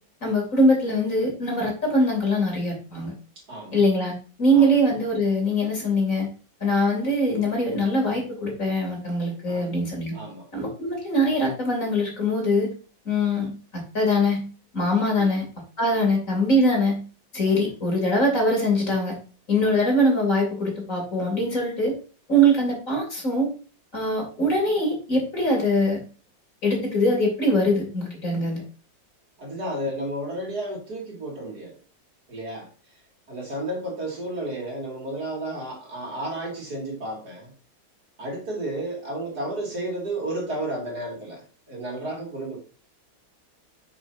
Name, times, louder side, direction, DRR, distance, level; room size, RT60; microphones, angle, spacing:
voice 1, 0.2-3.1 3.7-6.3 6.6-10.1 10.5-12.7 13.0-14.4 14.7-15.4 15.8-17.0 17.3-19.2 19.5-21.9 22.3-23.5 23.9-26.0 26.6-28.6, equal, 45° left, 0 dB, 3.4 m, -22 dB
voice 2, 10.1-10.5 15.2-15.3 15.9-16.0 17.4-17.6 19.6-19.8 29.4-31.7 32.3-32.7 33.3-37.5 38.2-42.6, right 1 dB, 55° right, -1 dB, 2.9 m, -32 dB
9.9 x 6.3 x 2.7 m, 0.36 s
omnidirectional pair, 2.0 m